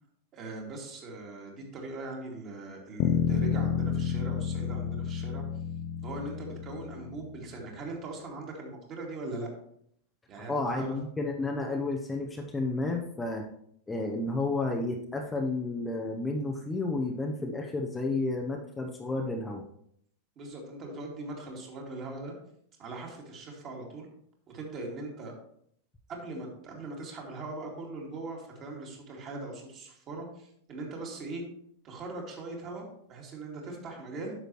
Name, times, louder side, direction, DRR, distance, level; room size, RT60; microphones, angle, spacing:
voice 1, 0.3-5.4 6.0-9.5 10.3-10.9 20.4-22.3 22.8-24.1 24.5-25.3 26.1-31.4 31.8-34.3, right 2 dB, 35° right, -1 dB, 2.5 m, -40 dB
sound 1, 3.0-7.4, left 7 dB, 45° left, 0.7 m, -30 dB
voice 2, 10.5-13.4 13.9-19.6, left 2 dB, 10° left, 1 dB, 0.8 m, -31 dB
9.3 x 6.5 x 3.1 m, 0.69 s
figure-of-eight pair, 90°, 0 cm